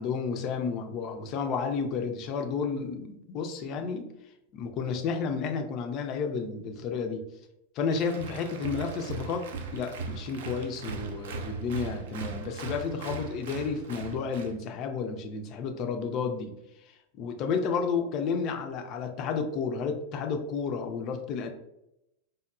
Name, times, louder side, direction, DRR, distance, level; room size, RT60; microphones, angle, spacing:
voice 1, 0.0-4.1 4.5-7.2 7.7-9.5 9.7-16.5 16.8-21.5, left 5 dB, 35° left, 5 dB, 0.3 m, -31 dB
Applause, 7.9-14.6, right 5 dB, 55° right, 0.3 m, -39 dB
2.9 x 2.0 x 2.3 m, 0.86 s
figure-of-eight pair, 90°, 0 cm